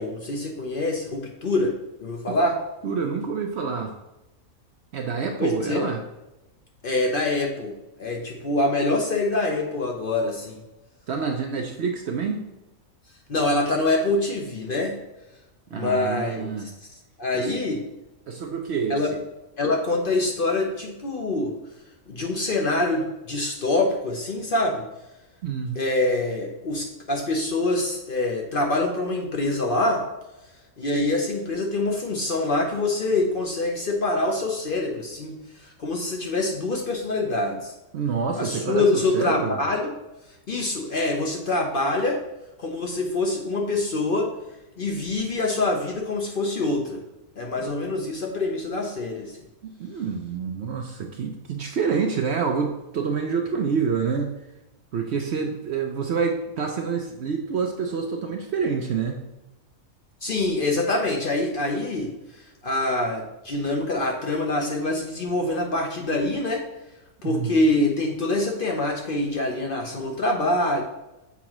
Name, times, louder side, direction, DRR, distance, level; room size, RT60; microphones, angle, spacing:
voice 1, 0.0-1.7 2.0-2.6 5.4-5.9 6.8-10.6 13.3-15.0 15.7-16.5 17.2-17.8 18.9-19.1 19.6-21.5 22.1-24.8 25.8-30.0 30.8-37.7 38.4-39.9 40.5-42.2 42.6-44.3 44.8-47.0 47.4-49.3 60.2-62.1 62.6-66.6 67.2-70.8, left 2 dB, 50° left, 1 dB, 0.8 m, -25 dB
voice 2, 2.8-3.9 4.9-6.0 11.1-12.4 15.7-16.7 17.3-17.5 18.3-19.2 25.4-25.8 37.9-39.6 47.6-47.7 49.6-54.3 54.9-59.2 67.2-67.6, right 5 dB, 65° right, 3 dB, 0.7 m, -27 dB
7.1 x 4.8 x 3.0 m, 0.98 s
omnidirectional pair, 1.5 m